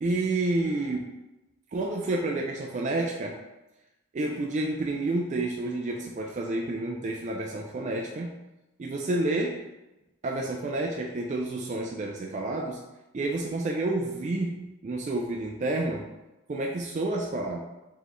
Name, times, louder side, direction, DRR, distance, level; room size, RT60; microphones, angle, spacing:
voice 1, 0.0-1.1 1.7-3.4 4.1-8.3 8.8-9.6 10.2-12.8 13.1-16.1 16.5-17.6, right 2 dB, 35° right, 0 dB, 0.3 m, -29 dB
4.0 x 3.3 x 3.0 m, 0.99 s
head